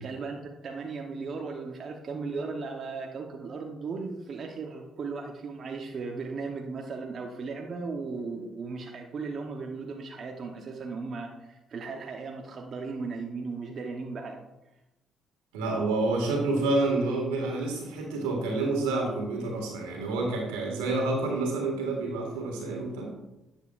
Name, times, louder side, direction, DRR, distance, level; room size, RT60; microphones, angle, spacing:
voice 1, 0.0-14.4, right 4 dB, 55° right, 2 dB, 0.9 m, -36 dB
voice 2, 15.5-23.1, right 2 dB, 90° right, 0 dB, 1.9 m, -28 dB
10.5 x 7.2 x 2.5 m, 0.95 s
hypercardioid pair, 55°, 0 cm